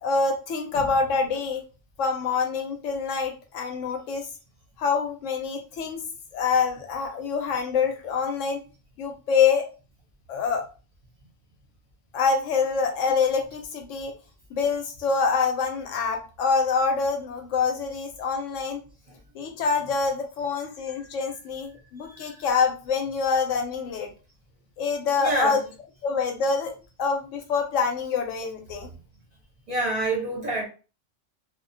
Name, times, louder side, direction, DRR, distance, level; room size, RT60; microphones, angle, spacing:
voice 1, 0.0-1.6 2.0-4.3 4.8-6.0 6.3-8.6 9.0-9.6 10.3-10.6 12.1-14.1 14.5-18.8 19.3-24.1 24.8-25.6 26.0-26.7 27.0-28.9, left 5 dB, 75° left, 1.0 m, -25 dB
voice 2, 25.2-25.6 29.7-30.7, right 2 dB, 40° right, 0.6 m, -27 dB
2.3 x 2.1 x 2.5 m
omnidirectional pair, 1.3 m